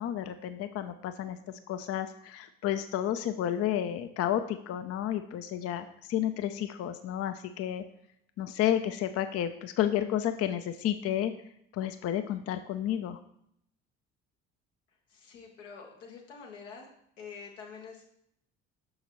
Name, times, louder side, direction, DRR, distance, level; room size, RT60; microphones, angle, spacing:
voice 1, 0.0-1.4 1.7-7.8 8.4-11.3 11.7-13.2, left 11 dB, 40° left, 10 dB, 0.5 m, -31 dB
voice 2, 15.1-16.9 17.2-18.0, left 5 dB, 80° left, 1 dB, 1.2 m, -46 dB
6.3 x 6.0 x 3.0 m, 0.73 s
figure-of-eight pair, 50°, 37 cm